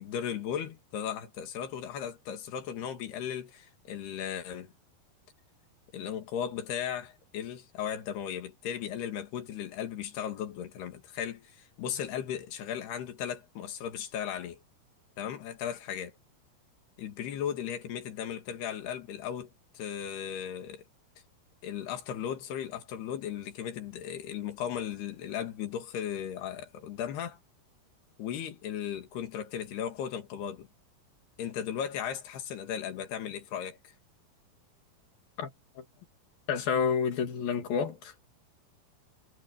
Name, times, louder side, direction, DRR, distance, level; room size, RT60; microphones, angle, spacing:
voice 1, 0.0-4.7 5.9-14.6 15.2-16.1 17.0-20.8 21.6-27.4 28.2-30.7 31.4-33.8, left 9 dB, 85° left, 4.3 m, -36 dB
voice 2, 36.5-38.1, left 6 dB, 65° left, 4.4 m, -29 dB
omnidirectional pair, 4.5 m